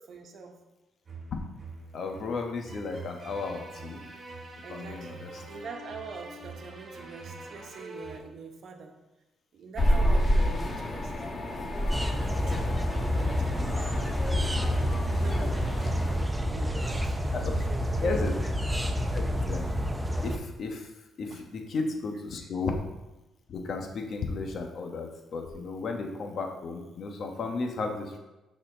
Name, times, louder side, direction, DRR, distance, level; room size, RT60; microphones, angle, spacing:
voice 1, 0.1-0.6 4.6-9.0 9.5-11.1 11.6-12.1 12.5-14.0 14.4-18.3 21.3-21.4 22.4-22.5, right 4 dB, 60° right, 4 dB, 1.1 m, -45 dB
sound 1, 1.1-8.2, right 2 dB, 40° right, 1.5 m, -45 dB
voice 2, 1.9-4.0 4.7-5.3 17.3-17.4 18.0-18.3 19.1-19.7 20.2-20.9 21.2-22.8 23.5-28.2, left 4 dB, 55° left, 3 dB, 1.2 m, -34 dB
sound 2, 9.8-16.2, equal, 30° left, 1.2 m, -29 dB
sound 3, 11.9-20.4, equal, 10° right, 0.7 m, -28 dB
6.6 x 4.3 x 5.0 m, 1.0 s
cardioid pair, 90°, 0 cm